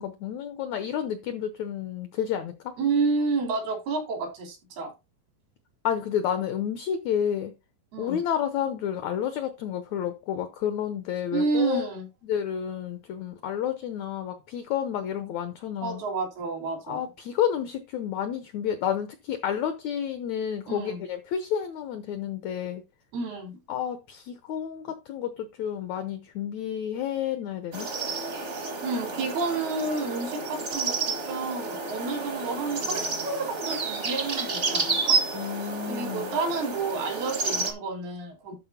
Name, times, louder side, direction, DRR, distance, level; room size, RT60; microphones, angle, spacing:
voice 1, 0.0-2.7 5.8-7.5 8.0-11.9 12.2-16.0 16.9-22.8 23.7-27.9 35.3-36.4, left 9 dB, 85° left, 1.6 m, -30 dB
voice 2, 2.8-4.9 7.9-8.2 11.3-12.1 15.8-17.1 20.7-21.0 23.1-23.6 28.8-35.2 35.9-38.6, right 4 dB, 85° right, 5.0 m, -30 dB
sound 1, 27.7-37.7, right 4 dB, 65° right, 0.6 m, -30 dB
12.0 x 4.2 x 4.3 m
omnidirectional pair, 4.3 m